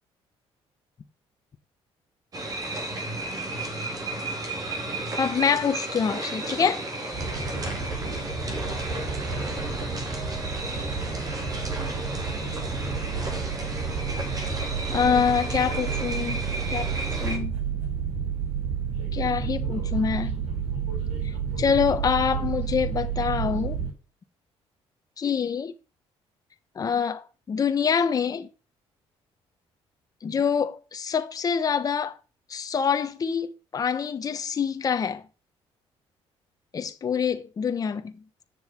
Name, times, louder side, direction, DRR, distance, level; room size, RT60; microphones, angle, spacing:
sound 1, 2.3-17.4, right 2 dB, 35° right, 3.2 m, -33 dB
voice 1, 5.2-6.8 14.9-16.4 16.7-16.9 17.2-17.6 19.1-20.4 21.6-23.8 25.2-25.7 26.8-28.5 30.2-32.2 32.5-35.2 36.7-38.1, left 6 dB, 35° left, 1.2 m, -25 dB
sound 2, 7.1-23.9, right 6 dB, 85° right, 5.4 m, -30 dB
7.9 x 7.0 x 7.5 m
cardioid pair, 120°, 11 cm